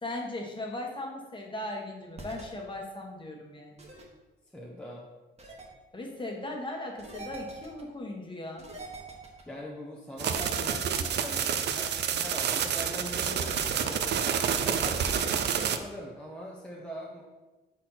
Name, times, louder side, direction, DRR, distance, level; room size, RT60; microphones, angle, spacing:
voice 1, 0.0-3.8 5.9-8.7, left 1 dB, 25° left, 0 dB, 1.4 m, -38 dB
sound 1, 2.2-2.4 3.8-4.0 5.4-5.7 7.0-7.8 8.6-9.4 10.2-11.4, right 2 dB, 30° right, 1.3 m, -44 dB
voice 2, 4.5-5.0 9.5-14.0 14.5-17.2, equal, 5° left, -3 dB, 0.9 m, -42 dB
sound 2, 10.2-15.8, right 7 dB, 60° right, 0.5 m, -29 dB
4.2 x 4.2 x 5.6 m, 1.1 s
cardioid pair, 90°, 20 cm